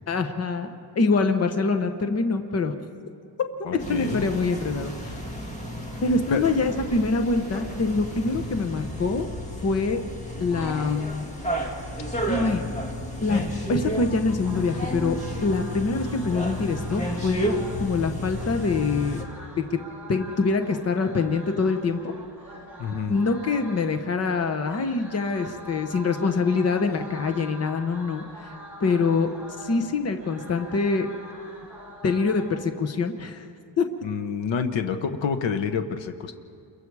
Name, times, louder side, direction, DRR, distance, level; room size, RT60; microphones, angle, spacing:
voice 1, 0.1-0.7 1.0-2.7 3.9-5.2 6.0-9.3 9.6-10.0 10.4-11.3 12.3-12.8 13.2-17.5 17.8-19.2 20.1-22.1 23.1-28.2 28.8-29.3 29.6-31.1 32.0-33.4 33.8-33.9, left 4 dB, 35° left, 7 dB, 1.0 m, -25 dB
voice 2, 3.6-4.3 6.3-6.4 22.8-23.2 34.0-36.3, left 6 dB, 80° left, 8 dB, 1.1 m, -28 dB
sound 1, 3.8-19.2, equal, 15° left, 2.0 m, -32 dB
sound 2, 14.4-32.6, right 1 dB, 5° right, 3.8 m, -44 dB
28.5 x 22.5 x 4.8 m, 2.4 s
wide cardioid pair, 175°, 44 cm